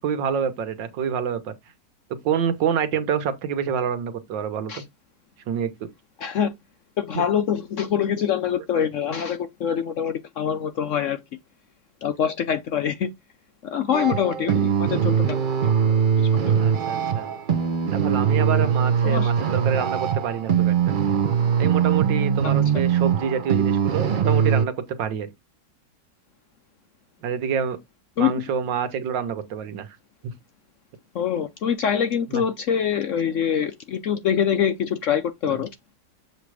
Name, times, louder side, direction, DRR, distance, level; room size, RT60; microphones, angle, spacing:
voice 1, 0.0-1.5 2.2-4.7 5.5-5.9 7.2-7.3 16.6-17.3 17.9-20.8 21.6-24.7 25.0-25.3 27.2-27.8 28.2-29.9 32.3-32.4 35.5-35.6, right 7 dB, 85° right, 1.8 m, -27 dB
voice 2, 6.2-6.5 7.0-11.2 12.0-13.1 13.6-16.6 19.0-19.3 22.4-22.5 28.2-28.4 31.1-35.7, left 8 dB, 75° left, 0.7 m, -25 dB
sound 1, 13.9-24.6, right 7 dB, 55° right, 0.5 m, -21 dB
7.5 x 3.1 x 4.8 m
omnidirectional pair, 2.0 m